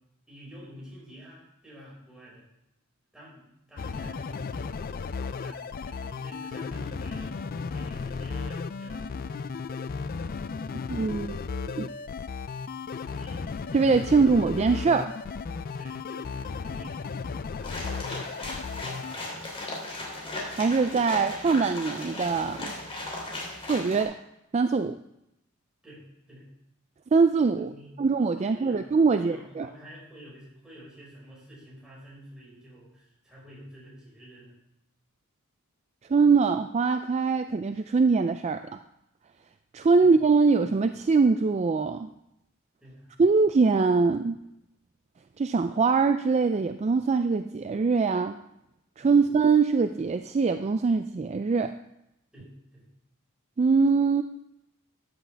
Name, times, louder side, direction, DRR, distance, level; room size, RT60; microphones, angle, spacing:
voice 1, 0.3-2.5 3.1-9.0 13.0-13.6 14.1-14.5 15.8-19.4 25.8-26.5 27.5-27.9 28.4-28.9 29.2-34.5 40.0-40.2 42.8-43.1 49.1-49.2 52.3-52.9, equal, 5° right, -6 dB, 5.3 m, -49 dB
sound 1, 3.8-19.2, left 5 dB, 40° left, 0.4 m, -35 dB
voice 2, 10.9-11.4 11.8-11.9 13.7-15.1 20.6-22.7 23.7-24.1 24.5-25.0 27.1-27.7 28.0-29.7 36.1-38.6 39.7-42.1 43.2-44.4 45.4-48.4 49.0-51.7 53.6-54.2, right 4 dB, 30° right, 8 dB, 0.3 m, -23 dB
sound 2, 17.6-24.0, left 2 dB, 25° left, 3.0 m, -37 dB
14.0 x 10.0 x 3.4 m, 0.83 s
head